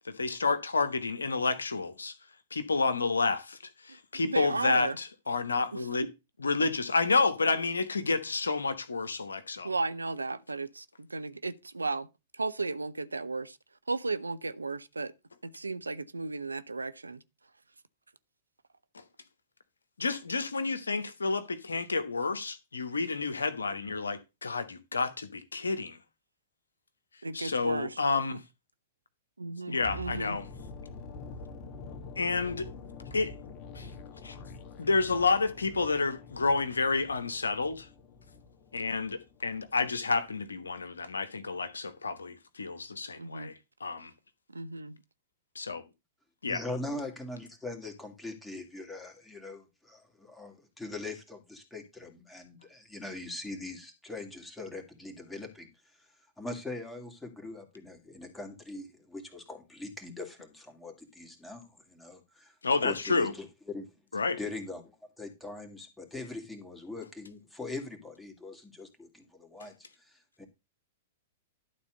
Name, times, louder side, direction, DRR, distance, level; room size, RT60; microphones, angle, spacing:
voice 1, 0.0-2.1 2.5-3.6 3.9-6.1 6.4-9.7 20.0-26.0 27.3-28.4 29.7-30.5 32.2-32.7 33.1-33.3 33.7-33.9 34.2-34.3 34.8-37.9 38.7-43.5 43.8-44.1 45.5-45.8 46.4-46.6 62.6-63.3 64.1-64.4, left 4 dB, 80° left, 1.2 m, -30 dB
voice 2, 4.2-5.0 5.7-5.8 9.6-12.1 12.4-13.6 13.9-15.1 15.4-17.2 27.2-28.0 29.4-30.4 43.2-43.5 44.5-45.0, right 3 dB, 85° right, 0.6 m, -34 dB
sound 1, 29.8-39.8 40.1-40.3, left 3 dB, 40° left, 1.4 m, -46 dB
voice 3, 46.5-55.7 56.0-56.1 56.4-62.5 62.8-63.9 64.4-70.5, left 2 dB, 5° left, 2.6 m, -42 dB
11.5 x 4.2 x 6.4 m
figure-of-eight pair, 105°, 0 cm